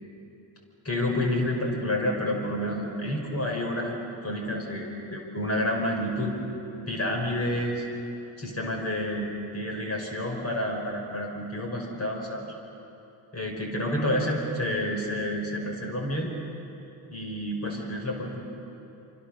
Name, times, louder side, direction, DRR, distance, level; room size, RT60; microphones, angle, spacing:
voice 1, 0.8-6.3 6.9-7.9 8.4-12.5 13.3-16.3 17.1-18.4, left 1 dB, 35° left, 0 dB, 5.5 m, -29 dB
26.5 x 24.5 x 6.6 m, 2.9 s
cardioid pair, 80°, 43 cm